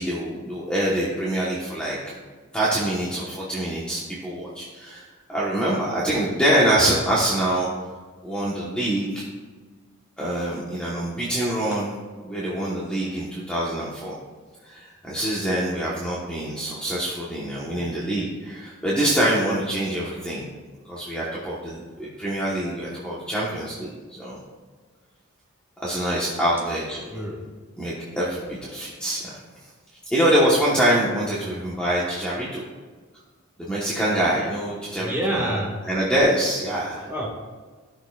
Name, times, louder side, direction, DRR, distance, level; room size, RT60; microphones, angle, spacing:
voice 1, 0.0-2.1 2.5-5.0 5.3-7.7 8.2-9.2 10.2-11.9 12.2-14.1 14.6-20.5 20.8-24.4 25.8-27.2 27.8-29.4 30.1-32.6 33.6-35.6 35.8-37.1, right 1 dB, 5° left, -7 dB, 1.1 m, -25 dB
voice 2, 27.1-27.5 31.4-31.5 35.0-35.8 37.1-37.3, right 1 dB, 10° right, -3 dB, 1.7 m, -28 dB
14.5 x 6.2 x 2.4 m, 1.4 s
head